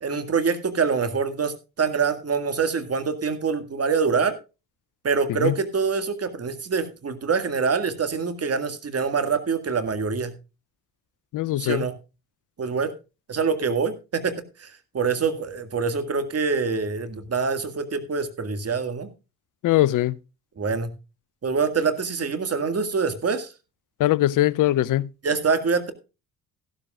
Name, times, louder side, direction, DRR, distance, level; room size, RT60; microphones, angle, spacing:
voice 1, 0.0-4.4 5.0-10.4 11.6-11.9 12.6-12.9 13.3-19.1 20.6-20.9 21.4-23.5 25.2-25.9, right 5 dB, 35° right, 2.0 m, -25 dB
voice 2, 11.3-11.8 19.6-20.2 24.0-25.1, left 15 dB, 50° left, 0.7 m, -21 dB
14.5 x 12.5 x 2.4 m
hypercardioid pair, 45°, 42 cm